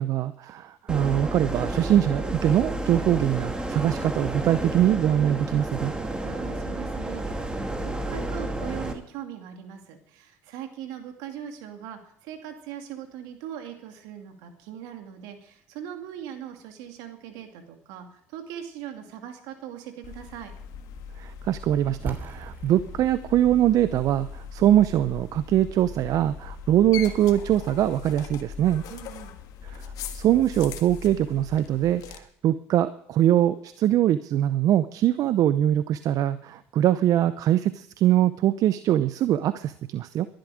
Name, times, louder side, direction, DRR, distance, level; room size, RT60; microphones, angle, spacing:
voice 1, 0.0-5.9 21.2-28.8 29.6-29.9 30.1-40.3, right 12 dB, 55° right, 15 dB, 0.6 m, -23 dB
sound 1, 0.9-8.9, right 1 dB, 15° right, 2.5 m, -31 dB
voice 2, 6.2-20.5 28.9-29.3, right 10 dB, 70° right, 5 dB, 2.5 m, -40 dB
sound 2, 20.0-32.2, left 6 dB, 65° left, 1.6 m, -40 dB
sound 3, 22.1-27.8, right 2 dB, 30° right, 3.2 m, -43 dB
21.5 x 11.5 x 5.0 m, 0.68 s
hypercardioid pair, 65°, 7 cm